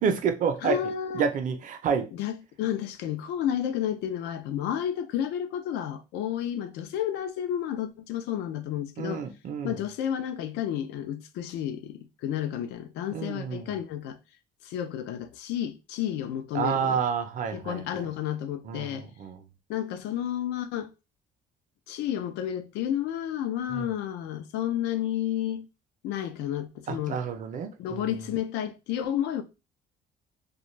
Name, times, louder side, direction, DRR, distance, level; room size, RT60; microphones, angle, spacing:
voice 1, 0.0-0.8 1.1-2.1 9.0-9.8 13.1-13.8 16.5-17.8 18.6-19.4 23.7-23.9 26.9-28.1, right 6 dB, 50° right, 0.6 m, -29 dB
voice 2, 0.6-1.2 2.1-9.2 9.6-14.2 14.6-17.0 17.5-19.1 19.7-20.9 21.9-25.7 26.0-27.2 27.8-29.4, left 10 dB, 85° left, 0.5 m, -31 dB
2.5 x 2.3 x 3.1 m
cardioid pair, 110°, 17 cm